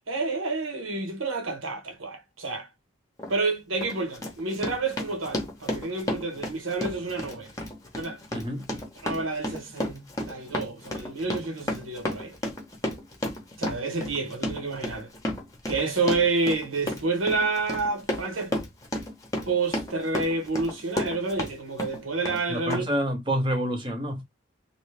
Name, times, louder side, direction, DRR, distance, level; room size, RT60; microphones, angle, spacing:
voice 1, 0.1-2.7 3.3-7.5 8.0-8.2 9.0-12.4 13.6-15.1 15.7-18.5 19.4-22.8, right 3 dB, 85° right, 1.1 m, -29 dB
Run, 3.2-3.3 3.8-21.5 21.8-22.4 22.7-22.8, left 1 dB, 15° left, 0.8 m, -32 dB
voice 2, 8.3-8.7 22.5-24.2, equal, 25° right, 0.8 m, -28 dB
3.1 x 2.7 x 3.3 m
head